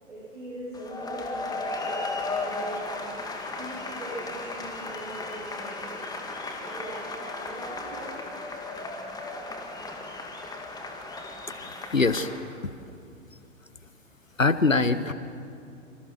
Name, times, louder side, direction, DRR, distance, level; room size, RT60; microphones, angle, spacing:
voice 1, 0.1-6.2 6.6-8.2, right 1 dB, 70° right, -6 dB, 7.8 m, -41 dB
sound 1, 0.7-12.4, left 2 dB, 10° left, 2.3 m, -35 dB
voice 2, 11.9-12.3 14.4-15.1, left 3 dB, 90° left, 13 dB, 1.2 m, -22 dB
26.5 x 25.5 x 6.3 m, 2.5 s
figure-of-eight pair, 105°, 38 cm